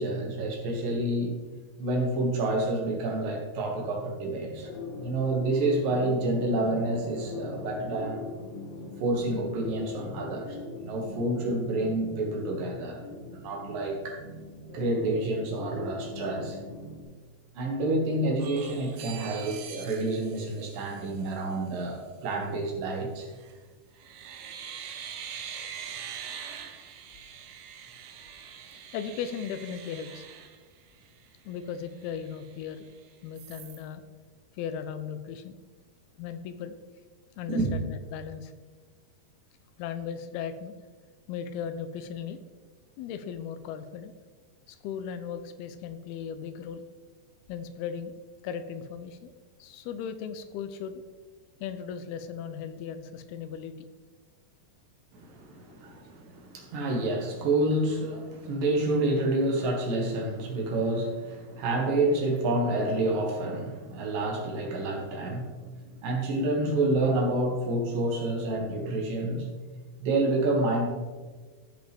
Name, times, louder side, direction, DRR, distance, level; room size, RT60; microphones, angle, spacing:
voice 1, 0.0-1.4 1.8-4.7 5.0-8.2 9.0-10.6 10.8-13.0 13.3-14.2 14.7-16.6 17.6-23.3 37.5-37.7 55.1-65.6 66.0-69.5 70.0-70.9, right 2 dB, 65° right, 0 dB, 3.0 m, -28 dB
sound 1, 4.3-17.0, left 2 dB, 60° left, 3.0 m, -41 dB
sound 2, 18.4-21.4 23.2-23.6 24.0-31.2 31.7-31.8 32.0-32.9 33.4-33.8, right 8 dB, 85° right, 1.8 m, -43 dB
voice 2, 28.9-30.3 31.5-32.9 33.2-34.0 34.5-35.6 36.2-36.8 37.4-38.5 39.8-40.7 41.3-42.4 43.0-44.2 44.7-46.9 47.5-48.1 48.4-49.3 49.6-51.0 51.6-53.7, left 7 dB, 85° left, 10 dB, 2.5 m, -37 dB
15.0 x 5.0 x 3.5 m, 1.4 s
omnidirectional pair, 4.6 m